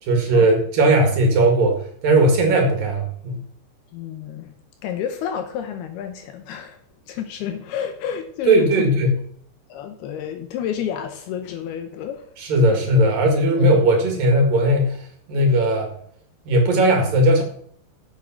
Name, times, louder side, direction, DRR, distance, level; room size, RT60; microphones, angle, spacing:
voice 1, 0.0-3.4 8.5-9.2 12.4-15.9 16.5-17.4, right 1 dB, 55° right, 3.3 m, -18 dB
voice 2, 3.9-4.5 4.8-6.8 7.1-8.9 9.7-12.3 12.7-12.9, left 9 dB, 75° left, 2.6 m, -30 dB
8.5 x 8.3 x 5.9 m
omnidirectional pair, 5.1 m